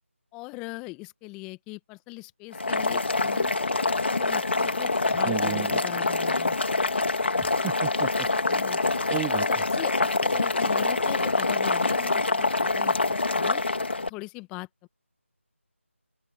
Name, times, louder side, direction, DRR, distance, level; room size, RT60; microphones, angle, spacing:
voice 1, 0.3-3.5 4.1-6.6 8.5-8.8 9.5-13.6 14.1-14.9, left 25 dB, 10° left, 1.5 m, -40 dB
Boiling, 2.5-14.1, left 3 dB, 55° left, 2.9 m, -25 dB
voice 2, 5.1-5.8 7.4-8.3 9.1-9.6, right 19 dB, 10° right, 2.8 m, -34 dB
open air
figure-of-eight pair, 165°, 7 cm